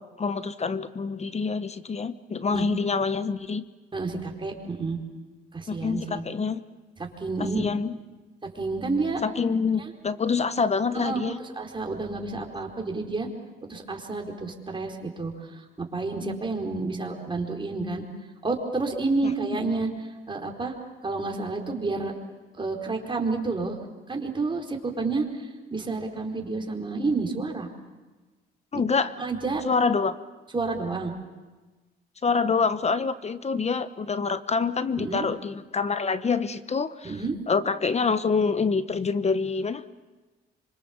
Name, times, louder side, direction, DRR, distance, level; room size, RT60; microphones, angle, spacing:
voice 1, 0.0-3.6 5.7-6.6 7.5-7.9 9.2-11.4 28.7-29.1 29.6-30.1 32.2-37.2 37.5-40.0, left 5 dB, 35° left, 13 dB, 1.0 m, -26 dB
voice 2, 3.9-5.0 5.5-6.2 7.0-7.7 8.4-9.2 9.8-9.9 10.9-11.2 11.6-13.3 13.7-18.0 18.4-19.9 20.3-20.7 21.0-22.1 22.6-23.8 24.1-27.7 29.2-29.6 30.5-31.1 35.0-35.3 37.0-37.4, right 3 dB, 25° right, 1 dB, 4.5 m, -30 dB
26.0 x 24.5 x 7.3 m, 1.2 s
cardioid pair, 90°, 20 cm